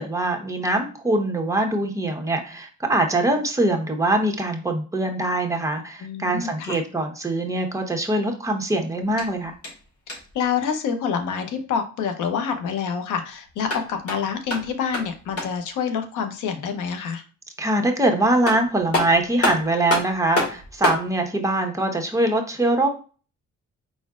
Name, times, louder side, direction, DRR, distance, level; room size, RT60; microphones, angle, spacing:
voice 1, 0.0-9.5 17.6-22.9, right 2 dB, 10° right, 2 dB, 1.0 m, -23 dB
voice 2, 6.0-6.8 10.3-17.2, left 6 dB, 90° left, 7 dB, 0.9 m, -27 dB
sound 1, 9.0-10.4 13.5-15.7 18.0-18.1 18.5-21.1, left 2 dB, 50° left, 2.1 m, -28 dB
4.8 x 4.2 x 2.4 m, 0.36 s
cardioid pair, 90°, 30 cm